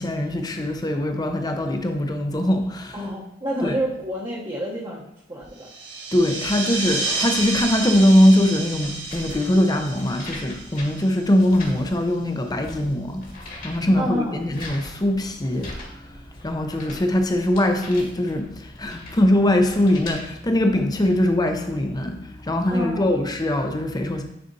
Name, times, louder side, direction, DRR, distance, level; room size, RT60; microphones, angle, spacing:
voice 1, 0.0-3.0 3.6-3.8 6.1-13.3 13.6-24.2, left 1 dB, 20° left, 5 dB, 0.6 m, -21 dB
voice 2, 2.9-5.7 14.0-14.4 22.7-23.2, equal, 25° right, -7 dB, 0.9 m, -29 dB
sound 1, 5.6-11.7, right 3 dB, 75° right, 2.0 m, -30 dB
sound 2, 6.8-20.2, left 2 dB, 50° left, 1.7 m, -42 dB
10.0 x 4.1 x 2.7 m, 0.78 s
head